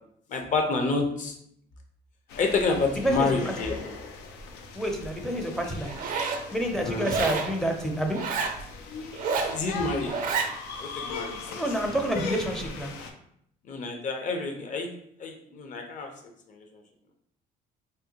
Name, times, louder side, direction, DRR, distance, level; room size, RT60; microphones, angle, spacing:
voice 1, 0.3-1.3 2.4-3.9 6.8-7.1 9.5-10.4 10.8-11.4 13.7-14.9 15.2-16.1 16.5-16.7, left 4 dB, 50° left, 3 dB, 0.7 m, -28 dB
sound 1, 2.3-13.1, left 4 dB, 90° left, 0.5 m, -40 dB
voice 2, 3.0-3.5 4.7-5.9 6.5-8.2 11.5-12.9, right 1 dB, 5° left, 2 dB, 0.5 m, -28 dB
Zipper (clothing), 5.9-6.4 7.0-7.5 8.1-8.6 9.1-9.6 10.1-10.5, right 5 dB, 55° right, 0.5 m, -29 dB
3.6 x 2.2 x 2.8 m, 0.70 s
cardioid pair, 110°, 17 cm